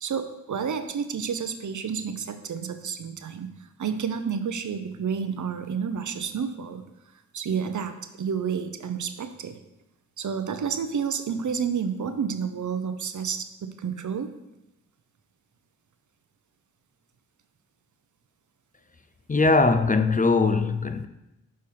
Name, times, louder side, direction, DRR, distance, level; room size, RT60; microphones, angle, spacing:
voice 1, 0.0-3.5 3.8-6.8 7.3-9.6 10.2-14.3, right 6 dB, 65° right, 0.7 m, -30 dB
voice 2, 19.3-21.1, left 3 dB, 25° left, 0.4 m, -21 dB
6.4 x 4.1 x 5.7 m
cardioid pair, 50°, 32 cm